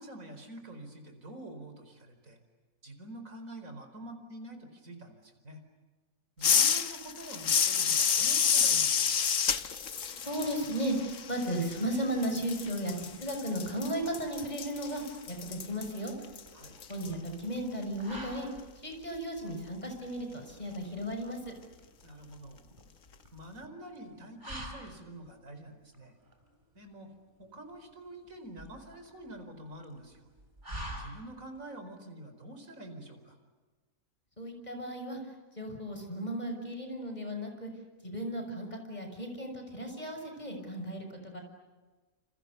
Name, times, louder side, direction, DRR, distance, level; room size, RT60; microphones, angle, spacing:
voice 1, 0.0-2.4 2.8-5.6 6.4-9.3 16.5-16.8 22.0-22.7 23.3-26.1 26.7-27.1 27.4-30.3 30.9-33.3, right 1 dB, 60° right, 6 dB, 5.0 m, -47 dB
sound 1, 6.4-12.0 12.2-17.1, left 7 dB, 60° left, 1.5 m, -29 dB
voice 2, 10.2-16.1 16.9-18.5 18.8-21.5 34.4-35.2 35.6-37.7 38.0-41.4, right 1 dB, 25° left, 4 dB, 6.5 m, -35 dB
sound 2, 14.6-31.6, right 1 dB, 30° right, 4.5 m, -48 dB
29.0 x 28.5 x 6.9 m, 1.3 s
omnidirectional pair, 1.6 m